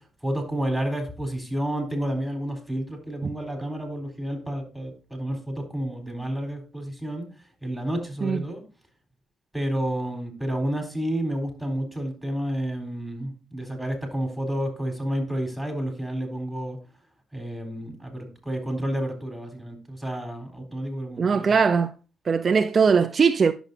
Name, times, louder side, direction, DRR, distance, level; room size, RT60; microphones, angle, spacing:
voice 1, 0.2-7.3 7.6-8.6 9.5-16.8 17.3-21.6, right 1 dB, ahead, 4.0 m, -30 dB
voice 2, 21.2-21.9 22.3-23.5, right 5 dB, 40° right, 0.5 m, -20 dB
10.5 x 7.1 x 2.7 m
cardioid pair, 90°, 0 cm